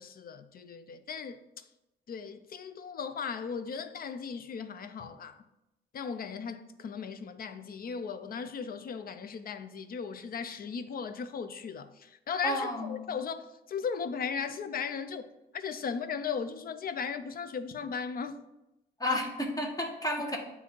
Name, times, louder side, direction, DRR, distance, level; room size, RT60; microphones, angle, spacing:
voice 1, 0.0-1.6 2.1-5.4 5.9-15.3 15.5-18.4, left 6 dB, 50° left, 0.5 m, -37 dB
voice 2, 12.4-12.9 19.0-20.4, left 1 dB, 20° left, 1.3 m, -31 dB
8.2 x 2.7 x 4.5 m
cardioid pair, 90°, 20 cm